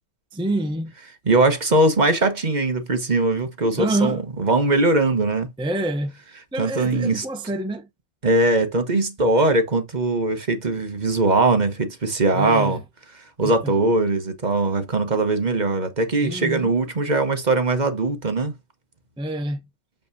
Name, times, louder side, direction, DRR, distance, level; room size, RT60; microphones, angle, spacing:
voice 1, 0.3-0.9 3.8-4.2 5.6-6.2 6.5-7.9 12.3-12.8 13.4-13.8 16.2-16.7 19.2-19.6, right 1 dB, 10° right, 0.3 m, -27 dB
voice 2, 1.3-5.5 6.6-7.2 8.2-12.8 13.4-18.5, right 2 dB, 30° right, 1.2 m, -21 dB
6.9 x 5.4 x 2.7 m
omnidirectional pair, 1.6 m